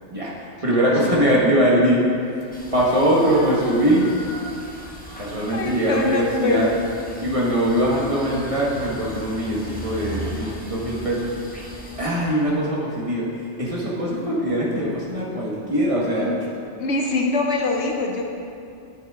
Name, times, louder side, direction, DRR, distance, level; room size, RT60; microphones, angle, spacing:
voice 1, 0.6-2.1 2.7-4.1 5.2-6.7 7.2-11.4 12.0-16.3, equal, 30° right, -5 dB, 1.4 m, -21 dB
sound 1, 2.5-12.1, equal, 10° left, 0.8 m, -40 dB
voice 2, 5.5-6.7 16.1-16.3 16.8-18.2, left 3 dB, 70° left, 1 dB, 1.0 m, -23 dB
sound 2, 6.5-12.8, right 1 dB, 15° right, 1.8 m, -39 dB
9.6 x 6.9 x 3.6 m, 2.5 s
omnidirectional pair, 1.2 m